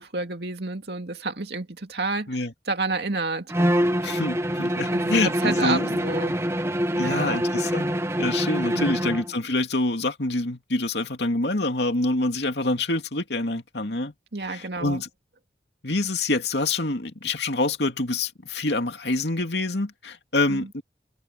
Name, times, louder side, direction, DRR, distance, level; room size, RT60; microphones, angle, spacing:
voice 1, 0.0-2.4 2.7-3.5 4.9-6.4 7.0-7.5 8.7-9.2 14.3-15.0 20.5-20.7, right 3 dB, 70° right, 2.3 m, -30 dB
Bowed string instrument, 3.5-9.3, equal, 15° right, 1.0 m, -25 dB
voice 2, 4.0-6.1 6.9-14.1 14.5-15.1 15.8-20.8, left 2 dB, 75° left, 2.5 m, -26 dB
head